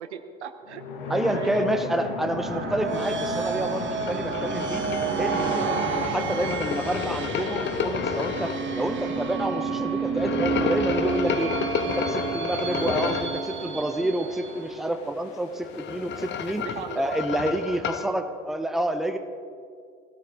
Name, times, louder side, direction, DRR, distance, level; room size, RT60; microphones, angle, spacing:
voice 1, 0.0-1.7 16.5-17.1, right 8 dB, 75° right, 9 dB, 0.9 m, -38 dB
sound 1, 0.6-16.6, left 5 dB, 65° left, 1.3 m, -38 dB
voice 2, 1.1-4.9 5.2-11.5 12.0-16.7 17.0-19.2, right 1 dB, ahead, 8 dB, 0.8 m, -28 dB
sound 2, 2.2-14.7, right 6 dB, 35° right, 1.5 m, -30 dB
sound 3, 4.0-8.5 10.2-13.4 15.5-18.1, left 7 dB, 30° left, 0.9 m, -31 dB
17.0 x 16.0 x 3.7 m, 2.3 s
figure-of-eight pair, 55°, 35 cm